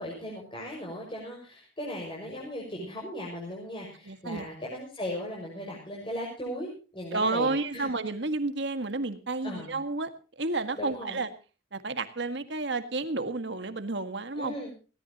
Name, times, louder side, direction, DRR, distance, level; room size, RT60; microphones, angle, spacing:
voice 1, 0.0-7.9 9.4-9.7 10.8-11.2 14.4-14.7, left 1 dB, 25° left, -2 dB, 6.1 m, -37 dB
voice 2, 4.1-4.5 7.1-10.1 10.4-11.3 11.7-14.5, right 3 dB, 60° right, 9 dB, 1.9 m, -31 dB
20.0 x 18.0 x 3.0 m, 0.36 s
head